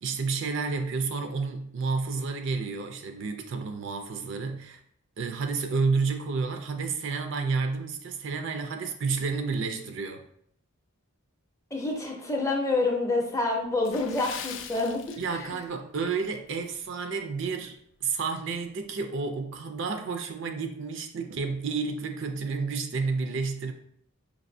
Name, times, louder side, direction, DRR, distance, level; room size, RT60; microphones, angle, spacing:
voice 1, 0.0-4.8 5.2-10.2 15.2-23.7, right 4 dB, 60° right, 5 dB, 0.4 m, -30 dB
voice 2, 11.7-15.2, left 2 dB, 15° left, 0 dB, 0.6 m, -27 dB
Water / Splash splatter, 13.8-15.7 16.0-16.2 16.8-17.0 17.5-17.6, left 8 dB, 60° left, 0.3 m, -41 dB
5.2 x 2.6 x 2.6 m, 0.66 s
head